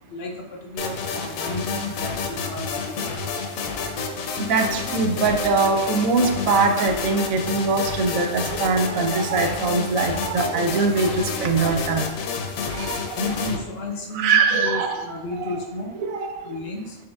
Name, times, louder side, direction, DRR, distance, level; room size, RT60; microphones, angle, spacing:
voice 1, 0.1-3.0 13.2-15.9 16.4-17.0, left 2 dB, 60° left, 2 dB, 0.7 m, -32 dB
sound 1, 0.8-13.6, left 4 dB, 90° left, 1.0 m, -29 dB
voice 2, 4.5-12.0 12.7-13.2 14.1-15.1 15.4-15.5 16.0-16.5, right 4 dB, 90° right, 4 dB, 1.0 m, -22 dB
4.6 x 4.6 x 2.2 m, 1.1 s
omnidirectional pair, 1.4 m